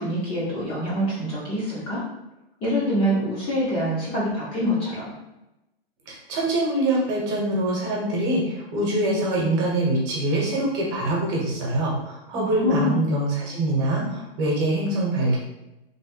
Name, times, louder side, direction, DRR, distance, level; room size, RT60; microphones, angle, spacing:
voice 1, 0.0-2.0 2.6-5.1 12.3-13.0, equal, 20° left, -7 dB, 0.7 m, -25 dB
voice 2, 6.1-15.4, right 1 dB, 30° right, -3 dB, 1.1 m, -24 dB
3.3 x 2.2 x 4.3 m, 0.94 s
hypercardioid pair, 155°, 31 cm